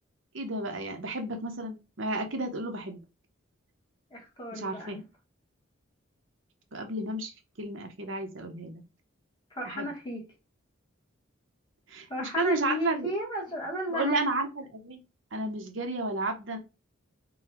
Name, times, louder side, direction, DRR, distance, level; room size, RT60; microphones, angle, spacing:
voice 1, 0.3-3.0 4.5-5.0 6.7-8.8 9.6-9.9 11.9-13.1 13.9-15.0 15.3-16.6, right 2 dB, 70° right, 0.9 m, -32 dB
voice 2, 4.1-5.0 9.5-10.2 12.1-14.2, left 1 dB, 20° left, 1.2 m, -34 dB
3.9 x 2.2 x 4.4 m
head